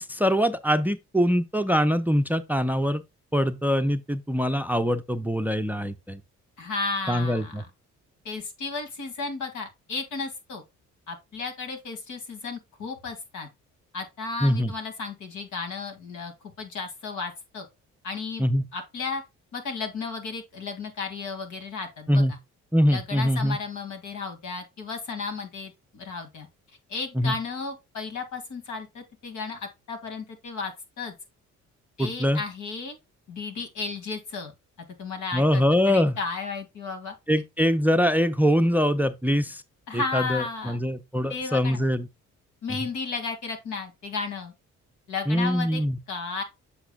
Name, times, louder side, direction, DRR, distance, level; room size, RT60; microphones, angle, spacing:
voice 1, 0.0-3.0 3.3-6.2 7.1-7.6 14.4-14.7 18.4-18.7 22.1-22.3 22.7-23.6 27.2-27.3 32.0-32.4 35.3-36.2 37.3-39.6 39.9-42.1 45.3-46.0, equal, 5° right, 0.5 m, -23 dB
voice 2, 6.6-7.7 8.2-10.6 11.1-13.5 13.9-17.7 18.0-18.5 18.7-19.2 19.5-22.4 22.9-26.5 26.9-31.1 32.0-33.0 33.3-34.5 35.0-37.1 39.9-40.8 41.3-41.8 42.6-44.5 45.1-45.8 46.1-46.4, left 4 dB, 75° left, 2.3 m, -34 dB
8.1 x 6.0 x 2.3 m
cardioid pair, 90°, 30 cm